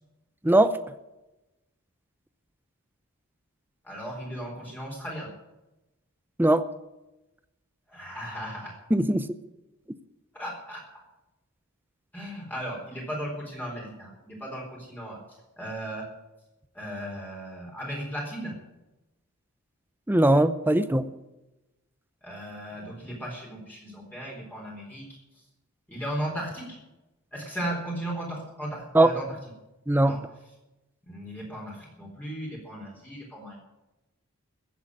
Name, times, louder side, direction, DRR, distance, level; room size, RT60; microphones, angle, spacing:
voice 1, 0.4-0.8 6.4-6.6 8.9-9.3 20.1-21.1 28.9-29.1 29.9-30.2, right 1 dB, 10° right, 12 dB, 0.6 m, -20 dB
voice 2, 3.8-5.3 7.9-8.7 10.3-10.8 12.1-15.2 15.6-16.1 16.7-18.5 22.2-25.0 25.9-26.8 27.3-29.2 30.0-30.2 31.1-33.6, right 1 dB, 10° left, -3 dB, 4.1 m, -36 dB
15.5 x 8.2 x 9.7 m, 0.97 s
head